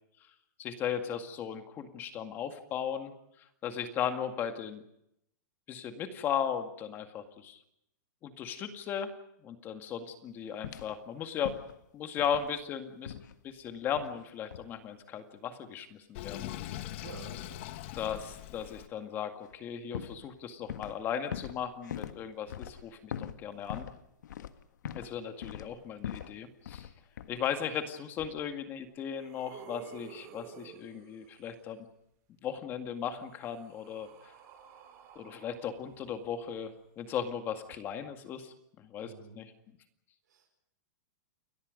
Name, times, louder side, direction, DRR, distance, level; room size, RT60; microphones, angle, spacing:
voice 1, 0.6-4.8 5.7-7.6 8.2-9.1 9.4-11.5 11.9-13.2 13.4-16.8 17.9-23.9 24.9-26.9 27.3-31.9 32.4-34.3 35.2-39.5, left 8 dB, 20° left, 7 dB, 2.1 m, -37 dB
sound 1, 10.6-11.0 11.4-11.9 12.2-12.6 13.1-13.4 14.0-14.2 14.5-14.7 19.4-19.6 19.9-21.0 21.3-25.2 25.4-26.4 26.7-26.9 27.2-27.5, left 9 dB, 80° left, 1.7 m, -42 dB
Sink (filling or washing), 16.1-18.9, left 14 dB, 40° left, 1.5 m, -41 dB
voice 2, 17.0-18.2 39.0-39.4 40.3-40.6, right 7 dB, 80° right, 1 dB, 5.3 m, -51 dB
sound 2, 28.2-28.3 28.8-31.6 32.8-36.7 37.7-37.8, right 8 dB, 30° right, 4.5 m, -53 dB
30.0 x 21.5 x 5.3 m, 0.77 s
supercardioid pair, 165°, 10 cm